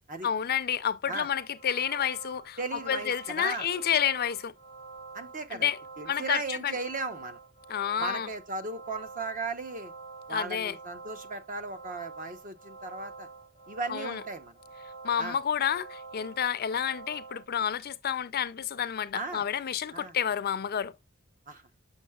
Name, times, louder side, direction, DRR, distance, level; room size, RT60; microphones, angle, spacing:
voice 1, 0.2-4.5 5.5-5.8 6.1-6.7 7.7-8.3 10.3-10.8 13.9-14.2 15.0-20.9, left 8 dB, 45° left, 0.5 m, -30 dB
sound 1, 1.4-17.5, right 4 dB, 60° right, 1.4 m, -47 dB
voice 2, 2.6-3.7 5.1-5.7 6.0-7.4 8.0-9.9 10.3-13.3 13.7-14.5 15.2-15.4 19.1-19.4 19.9-20.1 21.5-21.6, right 3 dB, 40° right, 0.9 m, -36 dB
7.1 x 6.4 x 2.3 m
head